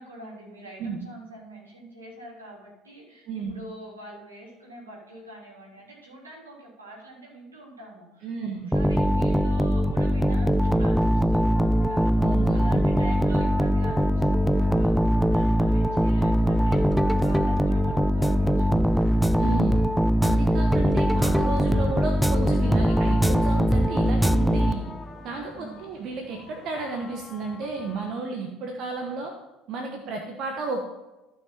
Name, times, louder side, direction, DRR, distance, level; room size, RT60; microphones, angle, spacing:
voice 1, 0.0-8.3 8.5-19.9 25.5-25.8, right 1 dB, 80° right, -3 dB, 3.4 m, -45 dB
voice 2, 3.3-3.6 8.2-8.7 12.2-12.8 19.4-19.9 20.2-24.9 25.2-29.3 29.7-30.8, right 4 dB, 45° right, 3 dB, 1.2 m, -33 dB
sound 1, 8.7-25.2, equal, ahead, 0.4 m, -21 dB
sound 2, 11.5-28.1, left 5 dB, 25° left, 1.0 m, -46 dB
14.5 x 6.0 x 4.3 m, 1.1 s
figure-of-eight pair, 65°, 0 cm